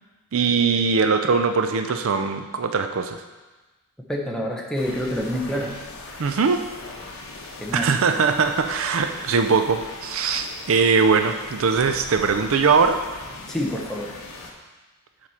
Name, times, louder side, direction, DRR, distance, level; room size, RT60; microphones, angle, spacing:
voice 1, 0.3-3.2 6.2-6.6 7.7-13.0, right 5 dB, 65° right, 7 dB, 0.5 m, -21 dB
voice 2, 4.1-5.7 7.6-7.9 13.5-14.2, equal, 5° left, -1 dB, 0.9 m, -27 dB
sound 1, 4.7-14.5, left 2 dB, 70° left, 1.1 m, -39 dB
7.3 x 4.8 x 5.6 m, 1.2 s
head